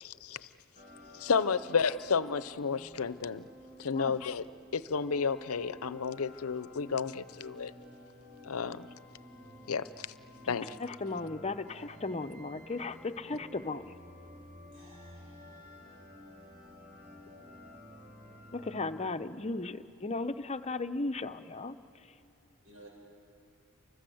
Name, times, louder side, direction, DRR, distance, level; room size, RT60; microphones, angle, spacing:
voice 1, 0.0-0.4 1.1-3.4 3.8-4.4 4.7-7.7 8.4-8.9 9.7-10.1 10.5-10.8, left 5 dB, 90° left, 16 dB, 0.7 m, -31 dB
sound 1, 0.8-19.1, equal, 35° right, 4.7 m, -52 dB
voice 2, 10.8-13.9 18.5-21.8, left 3 dB, 30° left, 8 dB, 0.8 m, -36 dB
voice 3, 14.7-15.8 22.6-22.9, right 2 dB, 70° right, -2 dB, 7.9 m, -57 dB
29.5 x 24.5 x 7.9 m, 2.5 s
head